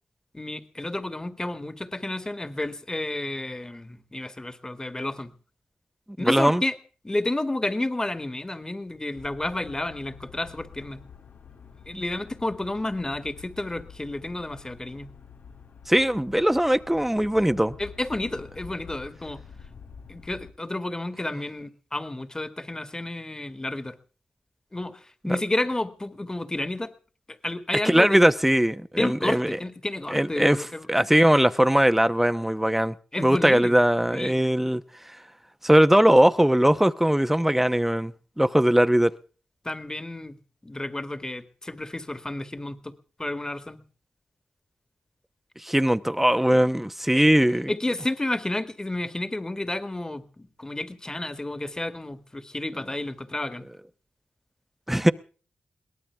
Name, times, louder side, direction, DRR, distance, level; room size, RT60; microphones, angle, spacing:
voice 1, 0.3-5.3 6.2-6.8 7.0-11.0 11.9-15.1 17.8-19.4 20.1-24.0 24.7-26.9 27.3-28.2 29.0-30.9 33.1-33.8 34.1-34.4 39.6-40.4 40.6-42.9 43.2-43.8 47.1-47.2 47.7-53.6, left 2 dB, 20° left, 1.9 m, -31 dB
voice 2, 6.2-6.6 11.9-12.0 15.9-17.7 25.2-25.4 27.8-29.5 30.1-30.6 30.9-34.8 35.6-39.1 45.6-47.7 54.9-55.1, right 1 dB, 5° right, 0.9 m, -20 dB
sound 1, 9.2-20.5, left 6 dB, 75° left, 1.6 m, -47 dB
22.5 x 18.5 x 3.5 m
cardioid pair, 70°, 3 cm